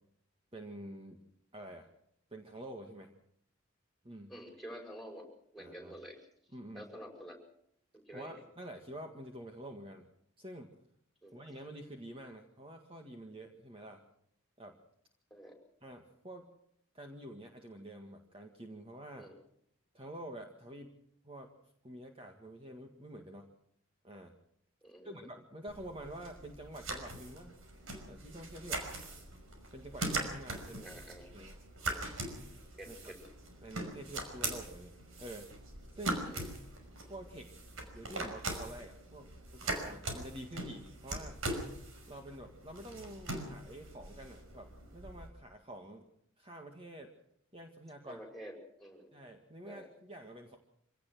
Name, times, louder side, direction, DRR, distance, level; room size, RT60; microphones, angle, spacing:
voice 1, 0.5-1.2 1.5-1.9 2.3-3.1 4.0-4.3 5.6-5.9 6.5-6.9 8.1-10.1 10.4-10.7 11.3-14.0 14.6-14.8 15.8-16.5 16.9-19.3 19.9-21.0 21.2-21.5 21.8-23.5 24.0-24.3 25.0-27.5 28.1-28.9 29.7-31.6 31.9-32.2 32.8-33.1 33.6-35.5 35.9-36.3 37.1-37.5 37.9-41.4 42.1-46.1 46.4-47.1 47.5-48.2 49.1-50.6, right 1 dB, 25° right, 3 dB, 1.9 m, -48 dB
voice 2, 4.3-5.3 5.5-6.2 6.7-7.4 7.9-8.4 11.2-11.4 15.3-15.5 19.1-19.3 24.8-25.3 30.8-31.3 32.8-33.2 36.0-36.4 48.1-49.1 49.7-49.9, equal, ahead, 3 dB, 5.6 m, -49 dB
sound 1, 25.7-45.3, right 2 dB, 80° right, 5.6 m, -41 dB
25.5 x 17.5 x 6.2 m, 0.70 s
head